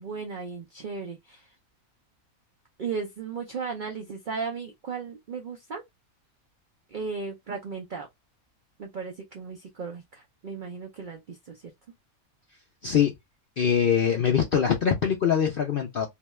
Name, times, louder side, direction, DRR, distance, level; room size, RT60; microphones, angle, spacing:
voice 1, 0.0-1.5 2.8-5.8 6.9-8.1 8.8-11.7, right 5 dB, 75° right, 0.4 m, -36 dB
voice 2, 13.6-16.1, left 8 dB, 65° left, 0.5 m, -23 dB
2.7 x 2.3 x 3.0 m
omnidirectional pair, 1.5 m